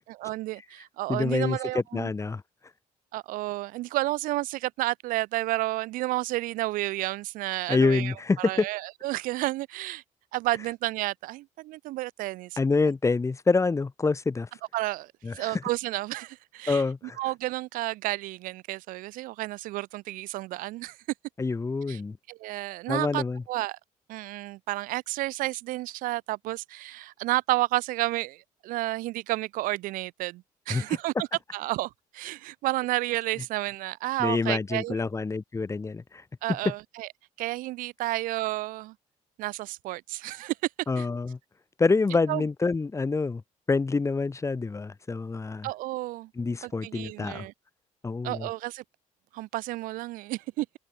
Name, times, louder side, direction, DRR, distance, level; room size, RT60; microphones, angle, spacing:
voice 1, 0.1-2.1 3.1-10.0 10.3-12.6 14.7-16.8 17.2-21.0 21.9-22.0 22.3-23.8 24.1-31.3 31.5-35.0 36.4-37.1 37.4-38.9 39.4-40.6 41.0-41.1 42.3-42.5 45.6-46.3 46.6-47.5 48.2-48.8 49.3-50.7, right 18 dB, 90° right, 0.8 m, -31 dB
voice 2, 1.1-2.4 7.7-8.7 12.6-14.5 15.2-15.6 16.7-17.2 21.4-22.2 22.9-23.4 30.7-30.8 34.2-36.2 40.9-41.4 41.8-43.4 43.7-45.7 46.4-47.5 48.0-48.5, left 4 dB, 20° left, 1.9 m, -26 dB
cardioid pair, 115°, 14 cm